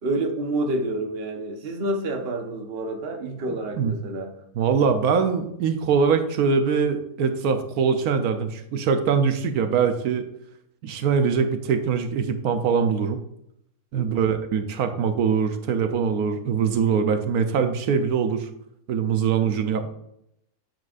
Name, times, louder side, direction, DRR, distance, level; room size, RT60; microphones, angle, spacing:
voice 1, 0.0-4.3 13.9-14.3 19.4-19.6, right 1 dB, 45° right, 3 dB, 1.1 m, -28 dB
voice 2, 4.5-10.2 10.8-13.2 13.9-18.5 18.9-19.9, right 6 dB, 80° right, 7 dB, 1.2 m, -23 dB
9.6 x 6.9 x 2.5 m, 0.77 s
omnidirectional pair, 1.5 m